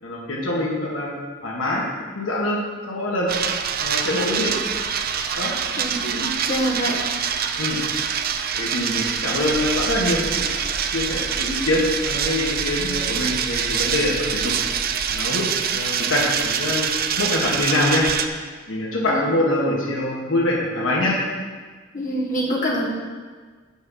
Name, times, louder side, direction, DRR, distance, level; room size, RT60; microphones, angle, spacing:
voice 1, 0.0-1.1 1.4-1.8 2.1-3.3 3.8-4.5 5.4-5.5 7.6-7.8 8.5-14.5 15.1-15.5 15.7-18.0 18.7-21.2, left 1 dB, 75° left, -3 dB, 1.6 m, -24 dB
sound 1, 3.3-18.3, right 7 dB, 50° right, 0.5 m, -25 dB
voice 2, 5.8-7.0 19.0-19.2 21.9-22.9, equal, 40° left, -5 dB, 1.7 m, -25 dB
sound 2, 9.4-15.1, equal, 25° right, 1.1 m, -37 dB
6.2 x 6.2 x 7.4 m, 1.5 s
head